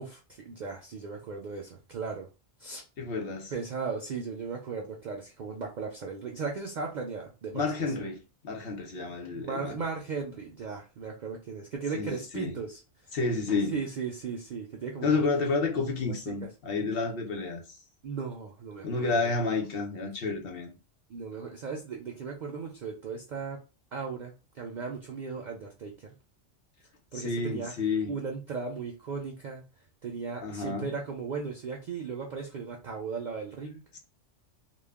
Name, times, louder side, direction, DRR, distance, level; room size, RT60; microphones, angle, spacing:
voice 1, 0.0-2.3 2.6-2.8 3.5-7.6 9.3-12.8 13.7-15.2 16.3-16.4 18.0-19.3 21.1-23.6 23.9-26.1 27.1-27.7 28.1-29.6 30.0-33.8, right 5 dB, 65° right, 0.4 m, -36 dB
voice 2, 3.0-3.5 7.5-9.7 11.9-12.5 13.1-13.8 15.0-17.8 18.8-20.7 27.1-28.1 30.4-30.9 33.9-34.0, left 4 dB, 60° left, 0.7 m, -30 dB
2.2 x 2.1 x 3.4 m
omnidirectional pair, 1.2 m